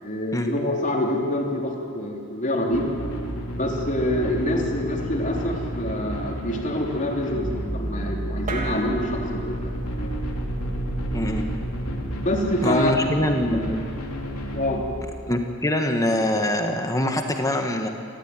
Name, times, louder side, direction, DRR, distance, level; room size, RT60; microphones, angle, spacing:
voice 1, 0.0-2.9 3.6-10.1 12.2-12.9 14.5-14.8, left 1 dB, 35° left, 0 dB, 3.5 m, -26 dB
sound 1, 2.7-14.7, equal, 85° left, 3.5 m, -31 dB
sound 2, 8.5-15.2, right 2 dB, 35° right, 3.3 m, -35 dB
voice 2, 11.1-11.4 12.6-13.9 15.3-17.9, left 1 dB, 15° left, 4 dB, 1.4 m, -24 dB
28.0 x 14.5 x 9.7 m, 2.4 s
head